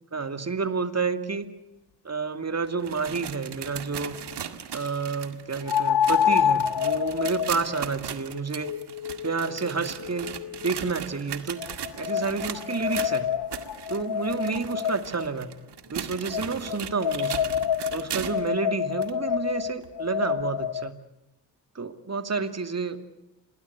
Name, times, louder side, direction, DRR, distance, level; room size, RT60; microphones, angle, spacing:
voice 1, 0.1-1.5 2.0-4.2 4.7-8.7 9.2-10.3 10.6-11.6 12.0-13.3 13.9-15.5 15.9-17.6 17.9-21.0 21.7-23.0, right 4 dB, 35° right, 9 dB, 2.5 m, -30 dB
sound 1, 2.6-18.5 19.0-19.1 19.8-19.9 20.8-20.9, right 9 dB, 65° right, 2.1 m, -38 dB
sound 2, 3.1-3.2 5.7-10.8 11.6-15.3 16.3-20.9, left 9 dB, 60° left, 0.9 m, -28 dB
27.5 x 20.0 x 8.3 m, 0.96 s
supercardioid pair, 50°, 43 cm